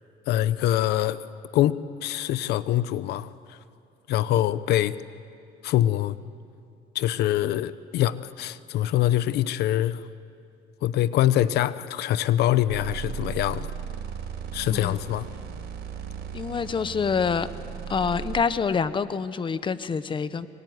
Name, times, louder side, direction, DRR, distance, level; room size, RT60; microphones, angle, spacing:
voice 1, 0.3-1.2 1.5-3.6 4.1-4.9 5.6-6.2 6.9-10.0 10.8-13.7 14.5-15.3, left 13 dB, 75° left, 0.9 m, -24 dB
sound 1, 12.7-18.4, right 7 dB, 75° right, 4.8 m, -36 dB
voice 2, 14.7-15.0 16.3-17.5 17.9-20.5, left 6 dB, 30° left, 1.0 m, -26 dB
25.0 x 24.0 x 9.5 m
cardioid pair, 110°, 17 cm